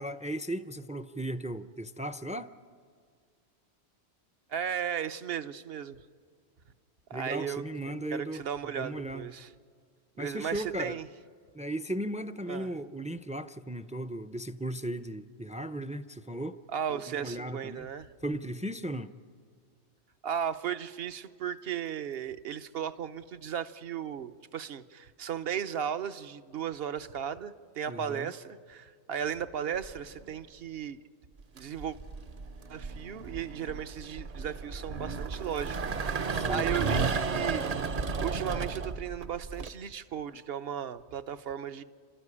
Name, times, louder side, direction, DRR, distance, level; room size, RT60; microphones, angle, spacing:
voice 1, 0.0-2.5 7.1-9.3 10.2-11.0 11.5-16.6 16.9-17.9 18.2-19.1 27.9-28.3 36.3-36.7, right 1 dB, 10° right, 12 dB, 0.3 m, -36 dB
voice 2, 4.5-6.0 7.1-7.6 8.1-9.5 10.2-11.1 12.5-12.7 16.7-18.1 20.2-31.0 31.5-32.0 32.7-37.7 38.2-41.8, right 8 dB, 65° right, 11 dB, 1.0 m, -36 dB
sound 1, 29.8-30.3 31.4-39.7, right 4 dB, 45° right, 0.7 m, -33 dB
29.5 x 13.5 x 9.8 m, 2.1 s
omnidirectional pair, 1.1 m